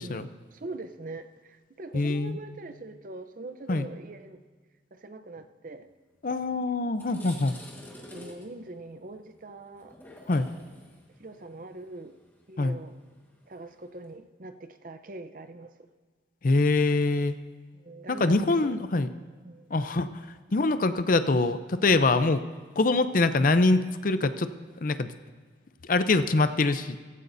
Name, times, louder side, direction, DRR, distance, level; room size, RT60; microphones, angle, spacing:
voice 1, 0.0-4.4 4.9-5.8 8.1-9.9 11.2-12.1 12.5-12.9 13.5-15.7 17.7-19.0 19.4-19.7, right 2 dB, 45° right, 9 dB, 0.7 m, -43 dB
voice 2, 1.9-2.4 3.7-3.9 6.2-7.5 10.3-10.5 12.6-12.8 16.4-17.4 18.1-19.1 19.7-20.2 20.5-22.4 22.8-24.5 24.8-25.1 25.9-27.0, left 3 dB, 45° left, 11 dB, 0.5 m, -24 dB
sound 1, 6.3-6.5 6.8-14.1, left 1 dB, 10° left, 1.4 m, -50 dB
16.5 x 15.0 x 2.6 m, 1.5 s
head